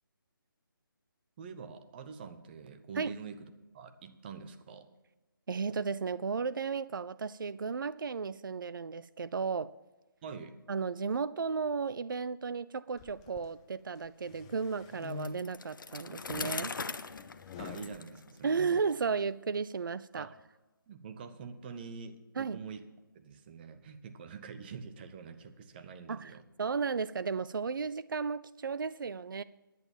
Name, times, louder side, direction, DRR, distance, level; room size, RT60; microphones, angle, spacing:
voice 1, 1.4-4.9 10.2-10.6 17.6-18.8 20.1-20.3 20.9-22.8 23.1-26.4, right 5 dB, 25° right, 8 dB, 0.9 m, -46 dB
voice 2, 5.5-9.7 10.7-16.7 18.4-20.3 22.4-22.6 26.1-29.4, right 5 dB, 65° right, 16 dB, 0.4 m, -34 dB
sound 1, 13.0-13.5 14.0-15.7 16.2-18.0, left 8 dB, 10° left, 0.3 m, -46 dB
Bicycle, 15.1-18.9, left 4 dB, 65° left, 0.8 m, -41 dB
10.5 x 9.0 x 7.3 m, 1.1 s
figure-of-eight pair, 150°, 12 cm